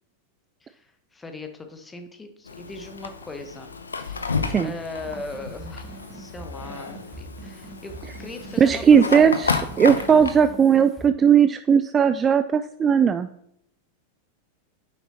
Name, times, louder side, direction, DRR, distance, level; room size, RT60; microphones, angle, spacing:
voice 1, 0.6-3.7 4.0-9.6 10.1-10.4, left 2 dB, 15° left, 6 dB, 1.1 m, -39 dB
Fire, 2.5-10.3, left 4 dB, 75° left, 0.7 m, -32 dB
sound 1, 4.9-11.1, right 3 dB, 5° right, 1.3 m, -43 dB
voice 2, 8.6-13.3, right 7 dB, 20° right, 11 dB, 0.3 m, -18 dB
9.2 x 7.1 x 2.9 m, 0.74 s
figure-of-eight pair, 90°, 0 cm